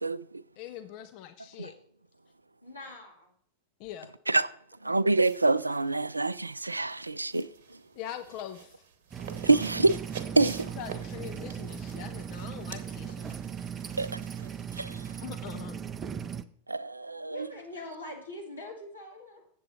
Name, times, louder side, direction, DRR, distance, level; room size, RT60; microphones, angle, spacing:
voice 1, 0.0-0.4 1.6-1.7 4.3-4.5 4.8-7.8 9.4-10.0 10.4-10.7 14.0-14.1 14.8-15.0 16.7-17.5, right 3 dB, 80° right, 0.3 m, -26 dB
voice 2, 0.6-1.7 3.8-4.1 8.0-8.8 10.8-13.3 15.2-15.8, left 11 dB, 45° left, 0.6 m, -42 dB
voice 3, 2.6-3.3 7.3-7.4 9.2-9.5 17.3-19.4, left 1 dB, 80° left, 2.3 m, -43 dB
sound 1, 5.2-15.5, right 7 dB, 55° right, 1.0 m, -48 dB
sound 2, 9.1-16.4, right 8 dB, 20° right, 0.5 m, -38 dB
7.8 x 7.7 x 4.2 m
figure-of-eight pair, 90°, 0 cm